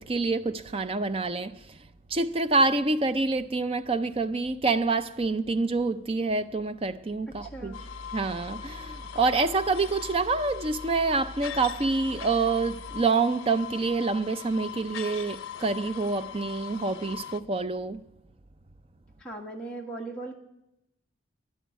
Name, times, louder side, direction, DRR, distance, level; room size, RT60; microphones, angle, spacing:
voice 1, 0.0-1.6 2.1-7.7 8.1-18.0, right 3 dB, 30° right, 0.5 m, -27 dB
sound 1, 7.3-13.0, equal, 40° left, 2.2 m, -45 dB
voice 2, 7.4-7.8 19.2-20.4, right 2 dB, 5° left, 1.6 m, -38 dB
sound 2, 7.7-17.4, left 10 dB, 90° left, 0.6 m, -41 dB
11.0 x 11.0 x 9.3 m
head